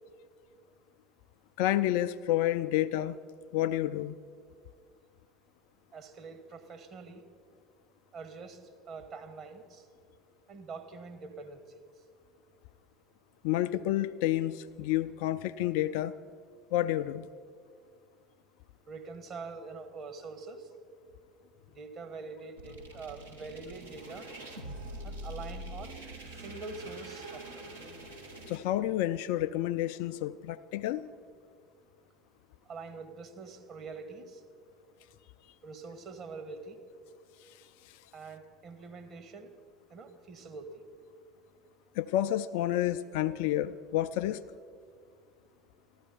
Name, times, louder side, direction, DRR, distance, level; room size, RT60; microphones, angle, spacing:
voice 1, 1.6-3.2 3.5-4.2 13.4-16.1 16.7-17.3 28.5-31.0 42.0-44.4, left 13 dB, 60° left, 13 dB, 0.3 m, -29 dB
voice 2, 5.9-7.2 8.1-9.9 10.5-11.7 18.9-20.7 21.7-24.3 25.0-26.0 26.3-27.7 32.7-34.4 35.6-36.8 38.1-39.5 39.9-40.8, right 4 dB, 40° right, 7 dB, 1.4 m, -44 dB
sound 1, 22.6-28.6, right 1 dB, 85° right, 1.6 m, -44 dB
14.5 x 12.0 x 5.4 m, 2.1 s
figure-of-eight pair, 65°, 0 cm